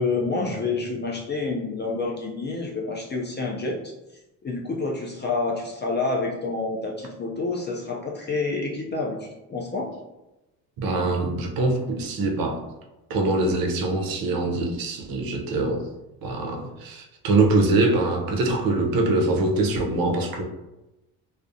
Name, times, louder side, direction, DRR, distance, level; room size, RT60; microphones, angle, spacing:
voice 1, 0.0-3.9 4.4-9.9, left 3 dB, 25° left, -2 dB, 0.4 m, -28 dB
voice 2, 10.8-12.6 13.1-15.8 16.2-20.4, right 2 dB, 50° right, 2 dB, 0.6 m, -23 dB
2.3 x 2.1 x 2.5 m, 0.98 s
hypercardioid pair, 60°, 45 cm